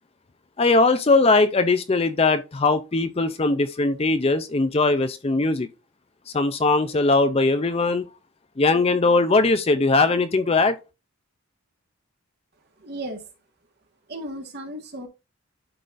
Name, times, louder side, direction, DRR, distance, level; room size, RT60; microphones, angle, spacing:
voice 1, 0.6-5.7 6.3-8.1 8.6-10.8, left 3 dB, 25° left, 0.4 m, -20 dB
voice 2, 12.8-13.2 14.1-15.1, right 1 dB, 50° right, 1.6 m, -34 dB
11.5 x 3.9 x 2.5 m
head